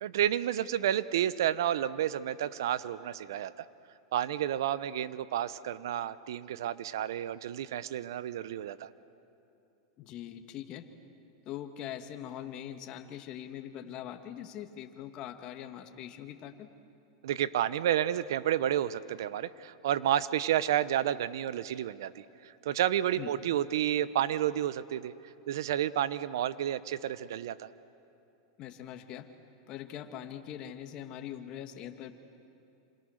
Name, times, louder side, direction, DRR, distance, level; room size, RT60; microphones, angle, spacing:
voice 1, 0.0-3.7 4.1-8.9 17.2-25.1 25.5-27.7, right 11 dB, 80° right, 16 dB, 0.9 m, -30 dB
voice 2, 10.0-10.9 11.5-16.7 23.2-23.3 28.6-29.3 29.7-32.1, left 10 dB, 45° left, 6 dB, 2.0 m, -42 dB
28.0 x 27.0 x 6.6 m, 2.8 s
supercardioid pair, 125°, 2 cm